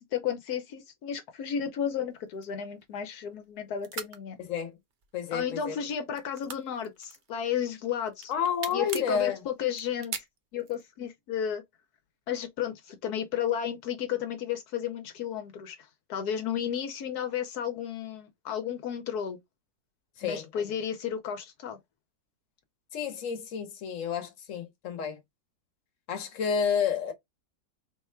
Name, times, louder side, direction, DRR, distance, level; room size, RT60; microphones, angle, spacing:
voice 1, 0.0-4.4 5.3-8.3 8.7-10.1 10.5-11.6 12.3-19.4 20.2-21.8, left 9 dB, 85° left, 1.3 m, -33 dB
sound 1, 2.3-3.5 3.8-4.2 4.9-5.4 5.7-7.6 8.0-9.2 9.7-10.9, right 6 dB, 50° right, 0.6 m, -40 dB
voice 2, 4.4-4.7 5.1-5.8 8.3-9.4 20.2-20.5 22.9-25.2 26.1-27.1, left 7 dB, 60° left, 1.3 m, -30 dB
3.9 x 2.3 x 4.3 m
omnidirectional pair, 1.6 m